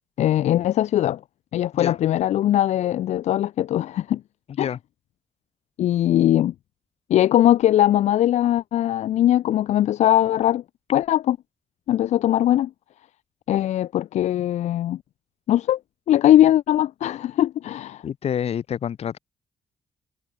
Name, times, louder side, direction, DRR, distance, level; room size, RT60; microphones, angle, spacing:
voice 1, 0.2-1.2 1.5-4.2 4.6-4.7 5.8-6.5 7.1-10.6 10.9-11.4 11.9-12.7 13.5-15.0 15.5-15.8 16.1-18.0, left 12 dB, 90° left, 0.6 m, -20 dB
voice 2, 18.0-19.2, left 8 dB, 65° left, 7.4 m, -27 dB
wide cardioid pair, 140°, 11 cm